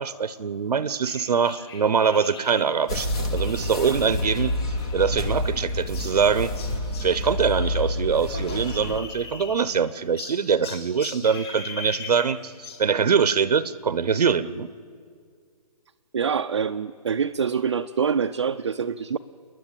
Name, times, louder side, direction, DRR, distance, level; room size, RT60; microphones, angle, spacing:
voice 1, 0.0-6.5 7.0-14.7, right 6 dB, 80° right, 15 dB, 0.8 m, -23 dB
sound 1, 1.0-7.9 8.1-9.8 10.2-12.9, left 5 dB, 40° left, 6.2 m, -41 dB
sound 2, 2.9-9.0, left 1 dB, 10° left, 0.5 m, -28 dB
voice 2, 16.1-19.2, right 6 dB, 45° right, 7 dB, 0.5 m, -25 dB
29.5 x 10.5 x 9.0 m, 2.1 s
hypercardioid pair, 175°, 20 cm